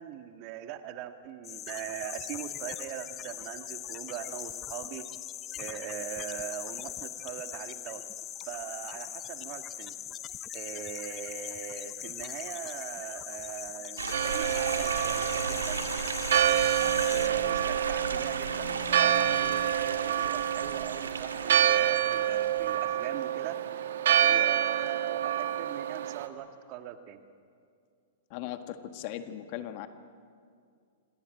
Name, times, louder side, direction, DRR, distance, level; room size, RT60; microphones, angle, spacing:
voice 1, 0.0-5.1 5.6-8.0 8.4-10.0 10.5-15.8 17.1-23.6 24.3-27.2, right 11 dB, 45° right, 8 dB, 1.9 m, -41 dB
sound 1, 1.4-17.3, left 11 dB, 30° left, 0.7 m, -40 dB
sound 2, 14.0-22.8, right 5 dB, 85° right, 2.0 m, -35 dB
Church bell, 14.1-26.3, right 11 dB, 70° right, 1.6 m, -28 dB
voice 2, 28.3-29.9, left 12 dB, 50° left, 9 dB, 1.6 m, -38 dB
26.5 x 18.5 x 9.1 m, 2.2 s
hypercardioid pair, 120°, 0 cm